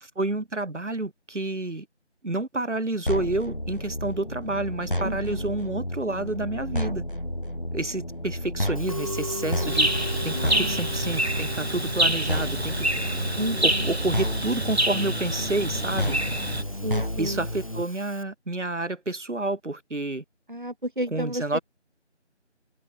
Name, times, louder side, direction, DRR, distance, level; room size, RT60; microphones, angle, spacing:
voice 1, 0.0-1.9 2.2-7.0 7.7-13.2 13.6-16.2 17.2-20.2 21.1-21.6, right 2 dB, 85° right, 1.5 m, -29 dB
sound 1, 3.1-17.8, left 1 dB, 45° left, 3.5 m, -31 dB
voice 2, 5.0-5.5 10.3-10.8 13.4-13.9 16.8-17.4 20.5-21.6, equal, 45° right, 1.1 m, -32 dB
Musical instrument, 8.8-18.2, equal, 30° left, 4.1 m, -40 dB
sound 2, 9.7-16.6, right 1 dB, 60° right, 2.8 m, -27 dB
figure-of-eight pair, 180°, 35 cm